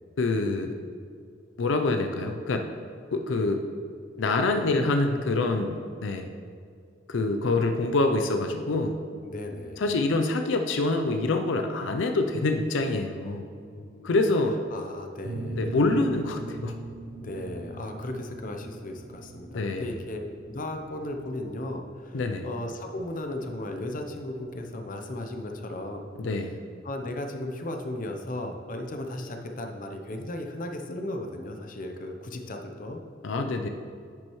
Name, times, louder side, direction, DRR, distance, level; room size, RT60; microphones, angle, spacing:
voice 1, 0.2-0.7 1.6-2.7 3.1-3.6 4.2-6.3 7.1-9.0 9.8-13.5 14.0-14.6 15.6-16.7 19.5-20.0 22.1-22.5 26.2-26.6 33.2-33.7, left 2 dB, 85° left, 5 dB, 0.5 m, -26 dB
voice 2, 9.2-9.8 13.5-14.2 14.7-15.7 17.2-26.1 26.4-26.5 26.8-33.0, left 1 dB, 45° left, 4 dB, 0.7 m, -36 dB
sound 1, 15.2-24.6, right 2 dB, 70° right, 0.6 m, -41 dB
10.0 x 6.1 x 3.1 m, 2.2 s
head